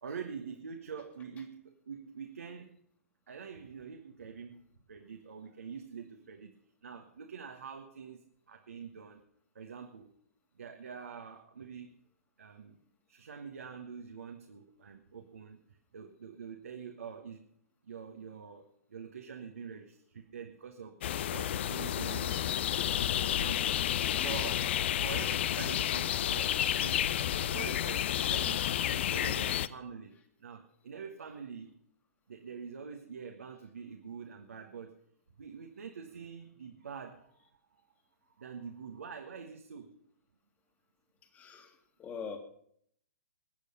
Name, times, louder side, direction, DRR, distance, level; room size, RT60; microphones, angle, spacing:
voice 1, 0.0-2.8 3.3-9.2 9.5-10.1 10.6-12.0 12.4-12.8 13.1-15.6 15.9-17.4 17.8-21.0 21.3-23.1 23.4-23.6 24.2-24.7 25.0-31.8 32.3-34.9 35.4-37.4 37.7-37.8 38.3-40.0, right 6 dB, 65° right, 4 dB, 1.4 m, -45 dB
sound 1, 21.0-29.7, left 11 dB, 50° left, 0.6 m, -31 dB
voice 2, 41.3-42.4, left 6 dB, 20° left, 6 dB, 2.0 m, -43 dB
21.0 x 8.4 x 5.5 m, 0.66 s
figure-of-eight pair, 115°, 8 cm